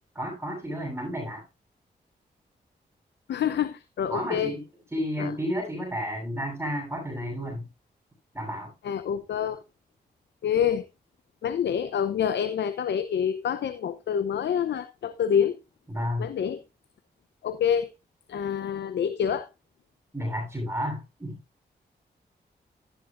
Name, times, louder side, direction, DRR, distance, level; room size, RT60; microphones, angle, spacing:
voice 1, 0.2-1.4 4.1-4.6 4.9-7.7 8.3-8.7 15.9-16.3 20.1-21.4, equal, 15° right, 7.7 m, -31 dB
voice 2, 3.3-4.6 5.2-5.3 8.8-9.6 10.4-10.8 11.4-15.6 16.2-16.6 17.4-17.9 18.3-19.5, left 8 dB, 85° left, 0.7 m, -27 dB
12.5 x 10.5 x 2.5 m
cardioid pair, 50°, 18 cm